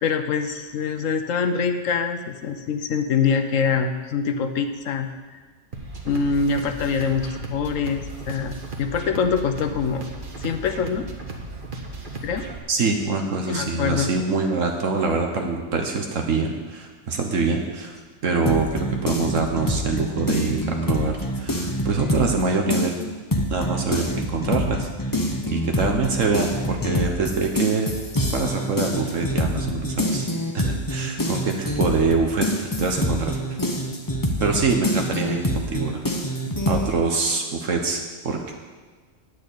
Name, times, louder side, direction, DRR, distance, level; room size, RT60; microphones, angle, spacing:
voice 1, 0.0-5.4 6.1-10.0 10.4-11.1 12.2-12.4 13.4-14.1, left 6 dB, 80° left, 7 dB, 1.1 m, -24 dB
sound 1, 5.7-12.6, right 2 dB, 40° right, 1.3 m, -36 dB
voice 2, 12.7-18.0 18.2-22.9 23.5-24.9 25.5-27.9 28.3-33.4 34.4-36.2 36.7-38.5, right 4 dB, 75° right, 2 dB, 1.5 m, -25 dB
sound 2, 18.5-22.4 22.7-36.9, equal, 20° left, 0.8 m, -25 dB
9.2 x 6.6 x 8.4 m, 1.4 s
omnidirectional pair, 1.3 m